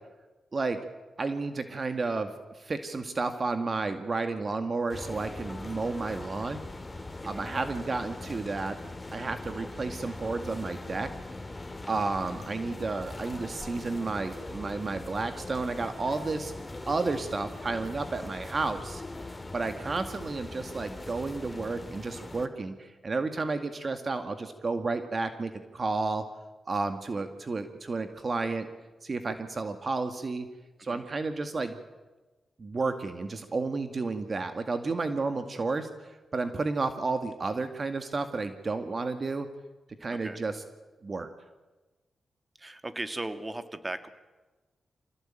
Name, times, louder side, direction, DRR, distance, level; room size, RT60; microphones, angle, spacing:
voice 1, 1.2-6.6 7.2-8.8 9.1-11.1 11.9-16.5 16.9-19.0 19.5-26.2 26.7-28.7 29.0-30.5 30.8-31.8 32.6-39.5 40.0-40.5 41.0-41.3, right 3 dB, 50° right, 8 dB, 2.1 m, -32 dB
sound 1, 4.9-22.5, left 2 dB, 25° left, 2.7 m, -41 dB
voice 2, 40.1-40.4 42.6-44.1, right 2 dB, 25° right, 9 dB, 2.5 m, -37 dB
26.0 x 17.5 x 9.1 m, 1.2 s
supercardioid pair, 40°, 0 cm